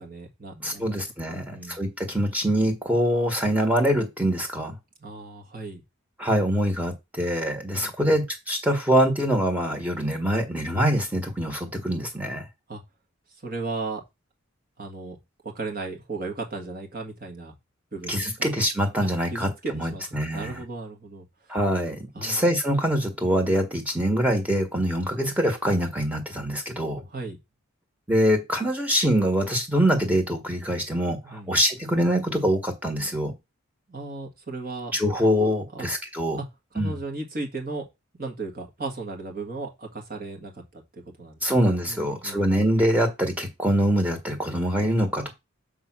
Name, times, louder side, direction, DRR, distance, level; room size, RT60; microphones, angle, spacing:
voice 1, 0.0-0.9 1.3-1.8 5.0-5.8 7.7-8.2 12.7-12.8 13.4-14.0 14.8-15.2 15.4-17.5 17.9-18.6 19.3-21.2 22.1-22.4 27.1-27.4 31.2-31.6 33.9-35.0 35.7-35.9 36.3-36.5 36.7-37.9 38.2-41.4 41.9-42.6, right 3 dB, 40° right, 3 dB, 1.9 m, -36 dB
voice 2, 0.6-4.8 6.2-12.4 18.1-20.6 21.5-27.0 28.1-33.3 34.9-36.4 36.7-36.9 41.4-45.3, equal, 5° right, 3 dB, 1.5 m, -24 dB
6.9 x 3.7 x 6.1 m, 0.22 s
head